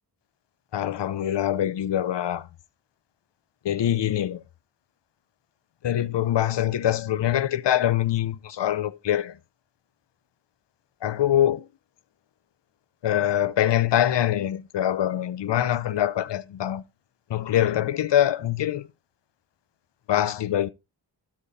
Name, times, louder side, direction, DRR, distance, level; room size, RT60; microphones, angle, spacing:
voice 1, 0.7-2.5 3.6-4.4 5.8-9.4 11.0-11.6 13.0-16.8 17.3-18.9 20.1-20.7, left 11 dB, 70° left, 0.8 m, -24 dB
13.0 x 4.4 x 4.2 m
wide cardioid pair, 80°, 45 cm